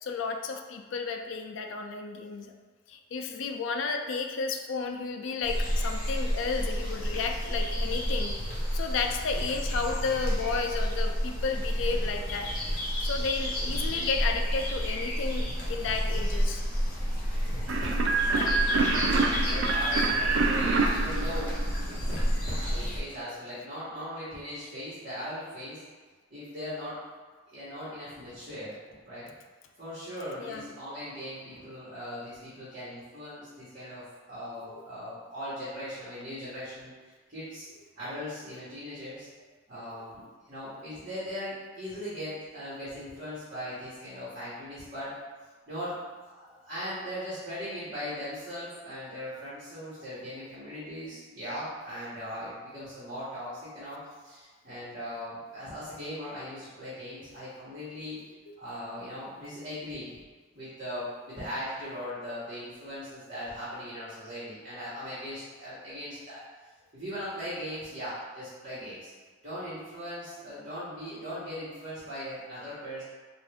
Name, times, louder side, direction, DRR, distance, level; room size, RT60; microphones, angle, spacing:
voice 1, 0.0-2.5 2.9-8.4 8.7-12.5 13.0-16.6 30.4-30.7 34.7-34.8 58.5-58.6, left 4 dB, 70° left, 5 dB, 0.4 m, -32 dB
sound 1, 5.4-23.0, equal, 40° left, 0.9 m, -30 dB
sound 2, 17.7-22.1, right 3 dB, 65° right, 0.3 m, -27 dB
voice 2, 18.1-22.1 22.6-25.8 26.3-27.0 27.5-28.8 29.0-29.3 29.8-37.7 38.0-39.3 39.7-45.1 45.7-58.2 58.6-60.2 60.5-66.4 66.9-69.1 69.4-73.0, equal, 45° right, -11 dB, 1.3 m, -39 dB
3.6 x 2.5 x 3.4 m, 1.4 s
head